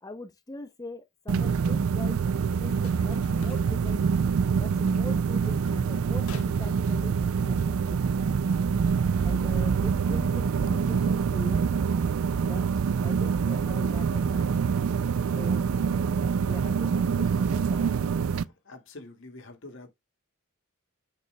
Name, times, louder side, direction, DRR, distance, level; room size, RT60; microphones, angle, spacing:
voice 1, 0.0-2.2 2.6-4.0 4.5-8.2 9.2-11.6 12.4-14.6 15.3-15.6 16.5-17.9, left 2 dB, 15° left, 0.6 m, -42 dB
sound 1, 1.3-18.4, right 6 dB, 75° right, 0.4 m, -25 dB
sound 2, 2.3-12.2, left 4 dB, 85° left, 1.2 m, -52 dB
voice 2, 18.4-19.9, left 2 dB, 60° left, 2.0 m, -46 dB
8.3 x 6.6 x 2.2 m
head